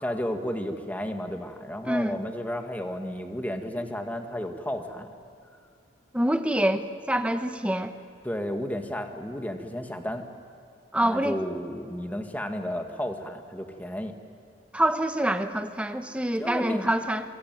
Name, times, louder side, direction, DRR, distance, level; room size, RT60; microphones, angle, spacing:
voice 1, 0.0-5.1 8.2-10.2 11.0-14.1 16.4-16.9, equal, 10° left, 5 dB, 1.8 m, -32 dB
voice 2, 1.8-2.2 6.1-7.9 10.9-11.4 14.7-17.2, right 1 dB, 5° right, 8 dB, 1.1 m, -26 dB
26.5 x 24.0 x 9.3 m, 2.2 s
head